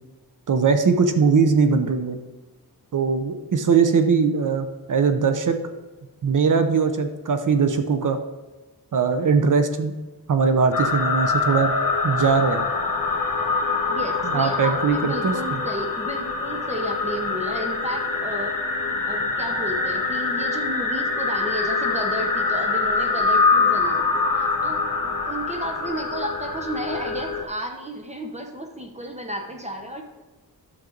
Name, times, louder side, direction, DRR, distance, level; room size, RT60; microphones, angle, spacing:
voice 1, 0.5-2.2 2.9-5.6 6.2-8.2 8.9-9.9 10.3-11.7 12.0-12.6 14.3-15.6, right 5 dB, 55° right, 7 dB, 0.8 m, -20 dB
sound 1, 10.7-27.4, left 4 dB, 60° left, 1.4 m, -24 dB
voice 2, 13.9-18.7 19.1-30.0, right 1 dB, 20° right, 2 dB, 0.9 m, -32 dB
11.0 x 6.4 x 3.9 m, 1.2 s
wide cardioid pair, 125°, 37 cm